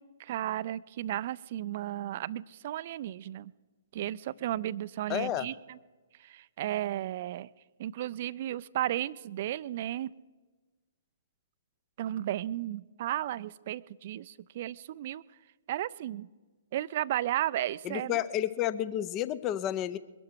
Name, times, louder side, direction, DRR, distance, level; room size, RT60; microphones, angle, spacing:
voice 1, 0.0-3.5 3.9-5.8 6.2-7.5 7.8-10.1 12.0-15.2 15.7-16.3 16.7-18.2, right 13 dB, 45° right, 19 dB, 0.4 m, -34 dB
voice 2, 5.1-5.5 17.8-20.0, left 12 dB, 25° left, 17 dB, 0.6 m, -31 dB
22.0 x 12.0 x 4.6 m, 1.3 s
figure-of-eight pair, 120°, 0 cm